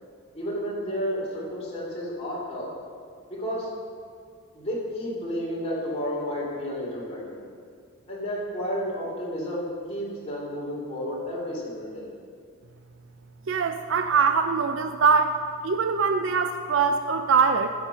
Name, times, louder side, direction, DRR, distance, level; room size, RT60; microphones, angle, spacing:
voice 1, 0.3-2.7 3.3-3.7 4.5-7.4 8.1-12.1, equal, 30° left, -6 dB, 2.8 m, -31 dB
voice 2, 13.5-15.4 15.6-17.7, right 5 dB, 60° right, 7 dB, 0.4 m, -22 dB
14.5 x 5.9 x 5.6 m, 2.1 s
head